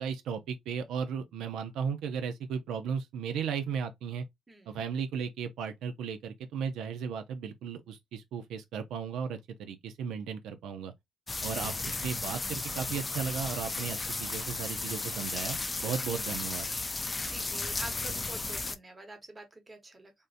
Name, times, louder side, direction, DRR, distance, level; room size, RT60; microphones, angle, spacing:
voice 1, 0.0-4.2 4.7-10.9 11.4-16.7, right 6 dB, 75° right, 0.5 m, -35 dB
voice 2, 4.5-4.8 11.3-11.7 15.9-16.2 17.2-20.1, right 2 dB, 15° right, 1.0 m, -48 dB
sound 1, 11.3-18.8, left 3 dB, 15° left, 0.3 m, -34 dB
3.5 x 2.7 x 2.5 m
cardioid pair, 150°, 0 cm